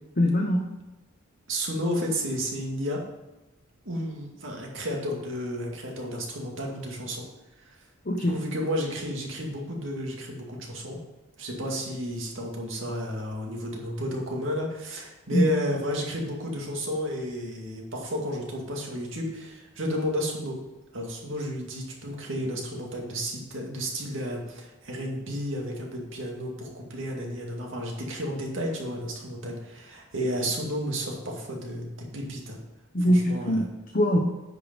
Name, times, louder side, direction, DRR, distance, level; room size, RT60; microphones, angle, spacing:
voice 1, 0.2-0.8 8.0-8.5 15.3-15.6 32.9-34.2, equal, 45° left, 1 dB, 1.0 m, -23 dB
voice 2, 1.5-3.0 3.9-7.2 7.6-7.8 8.3-11.0 11.4-20.6 20.9-32.6 33.1-33.7, equal, 65° right, -1 dB, 2.2 m, -32 dB
10.0 x 5.2 x 5.3 m, 1.1 s
head